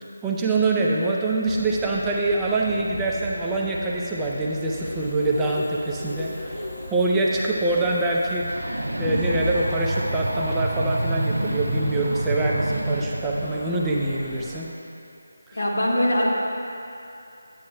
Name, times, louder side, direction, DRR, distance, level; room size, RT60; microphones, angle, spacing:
voice 1, 0.2-6.5 6.9-14.7 15.5-15.6, right 2 dB, 10° right, -4 dB, 0.5 m, -25 dB
sound 1, 1.4-14.6, equal, 55° left, 1.3 m, -39 dB
sound 2, 4.7-14.4, left 1 dB, 90° left, 0.8 m, -42 dB
sound 3, 8.4-13.5, right 1 dB, 85° right, 0.6 m, -27 dB
voice 2, 15.5-16.3, left 1 dB, 70° left, -4 dB, 1.6 m, -22 dB
9.2 x 8.3 x 2.3 m, 2.7 s
figure-of-eight pair, 160°, 0 cm